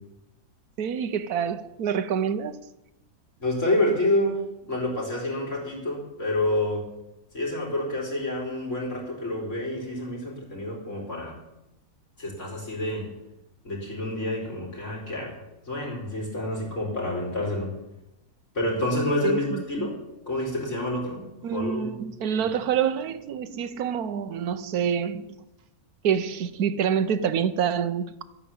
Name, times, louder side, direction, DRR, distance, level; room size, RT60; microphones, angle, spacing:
voice 1, 0.8-2.6 19.2-19.9 21.4-25.4 26.0-28.2, right 8 dB, 80° right, 1.3 m, -27 dB
voice 2, 3.4-6.8 7.3-11.3 12.2-13.1 13.6-15.4 15.7-17.7 18.5-19.9 20.3-21.2 21.5-21.9, left 1 dB, 55° left, 4.9 m, -28 dB
12.0 x 10.0 x 8.6 m
omnidirectional pair, 1.6 m